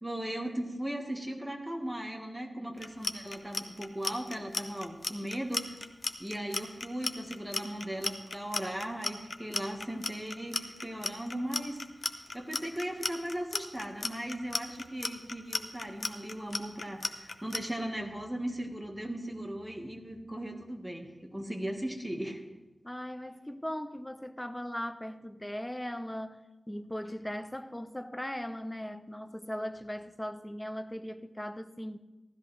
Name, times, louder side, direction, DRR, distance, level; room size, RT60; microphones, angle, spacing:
voice 1, 0.0-5.8 6.2-11.8 12.3-22.4, right 1 dB, 5° right, 1.5 m, -37 dB
Clock, 2.8-17.6, left 3 dB, 50° left, 0.8 m, -34 dB
voice 2, 22.8-32.0, equal, 10° left, 0.6 m, -39 dB
16.0 x 13.0 x 3.3 m
wide cardioid pair, 100°, 0 cm